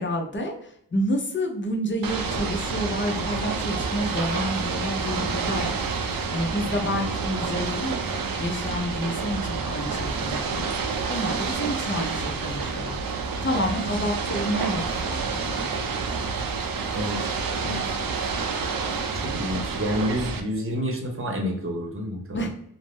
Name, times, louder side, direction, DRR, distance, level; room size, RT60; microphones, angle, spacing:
voice 1, 0.0-5.9 6.3-10.7 11.1-13.0 13.4-15.7 22.3-22.5, equal, 30° left, 3 dB, 0.6 m, -29 dB
Ocean / Boat Water vehicle, 2.0-20.4, right 4 dB, 65° right, 0.5 m, -29 dB
voice 2, 16.9-17.3 17.6-17.9 19.1-22.5, equal, 35° right, 0 dB, 0.9 m, -29 dB
2.3 x 2.0 x 3.5 m, 0.70 s
cardioid pair, 60°, 37 cm